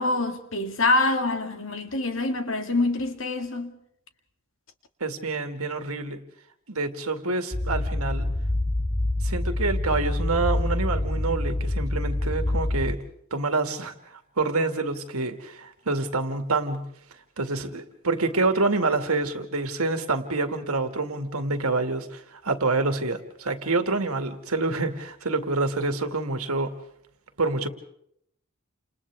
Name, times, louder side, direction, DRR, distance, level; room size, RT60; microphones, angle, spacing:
voice 1, 0.0-3.7, left 2 dB, 65° left, 2.2 m, -25 dB
voice 2, 5.0-6.2 6.7-8.3 9.2-13.0 13.3-16.8 17.4-26.7 27.4-27.7, right 3 dB, 85° right, 2.2 m, -27 dB
sound 1, 7.5-12.9, left 1 dB, 15° left, 0.8 m, -26 dB
30.0 x 28.0 x 3.6 m
head